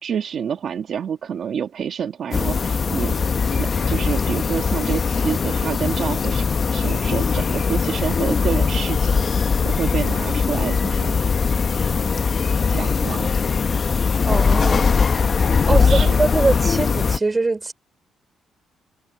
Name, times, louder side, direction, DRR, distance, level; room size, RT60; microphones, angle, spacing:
voice 1, 0.0-3.2 3.5-6.5 6.7-9.2 9.6-11.2 12.7-13.3 15.7-16.2, right 8 dB, 60° right, 1.9 m, -28 dB
sound 1, 2.3-17.2, left 5 dB, 40° left, 0.7 m, -20 dB
voice 2, 14.3-14.9 15.7-17.7, right 3 dB, 25° right, 3.5 m, -22 dB
cardioid pair, 90°, 0 cm